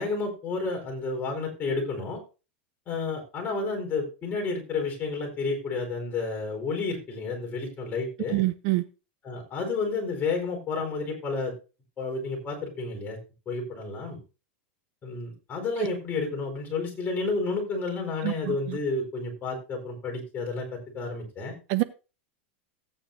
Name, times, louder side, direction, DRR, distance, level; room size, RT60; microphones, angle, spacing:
voice 1, 0.0-2.2 2.9-8.5 9.2-11.5 12.0-13.2 13.5-14.2 15.0-21.5, left 3 dB, 30° left, 4.3 m, -31 dB
voice 2, 8.3-8.8 15.8-15.9 18.2-18.8 21.7-21.8, right 19 dB, 50° right, 0.6 m, -26 dB
15.5 x 9.0 x 2.7 m
supercardioid pair, 135°, 7 cm